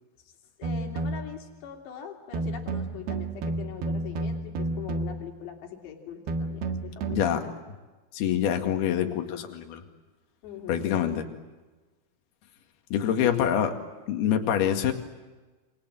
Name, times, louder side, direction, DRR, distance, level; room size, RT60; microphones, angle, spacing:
voice 1, 0.6-7.5 10.4-10.9 13.2-13.6, left 8 dB, 90° left, 2 dB, 5.1 m, -41 dB
sound 1, 0.6-1.4 2.3-5.4 6.3-7.3, right 2 dB, 70° right, 3.6 m, -31 dB
voice 2, 8.1-9.8 10.7-11.2 12.9-13.7 14.1-14.9, left 9 dB, 70° left, 5 dB, 4.0 m, -25 dB
29.0 x 27.0 x 7.6 m, 1.2 s
omnidirectional pair, 4.8 m